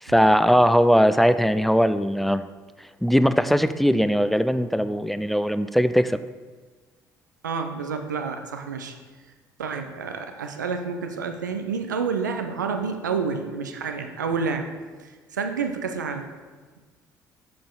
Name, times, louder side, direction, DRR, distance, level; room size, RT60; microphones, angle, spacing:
voice 1, 0.0-2.5 3.0-6.2, equal, ahead, 12 dB, 0.4 m, -20 dB
voice 2, 7.4-8.9 9.6-14.6 15.0-16.3, right 5 dB, 85° right, 6 dB, 0.5 m, -29 dB
7.6 x 6.8 x 3.7 m, 1.4 s
figure-of-eight pair, 50°, 10 cm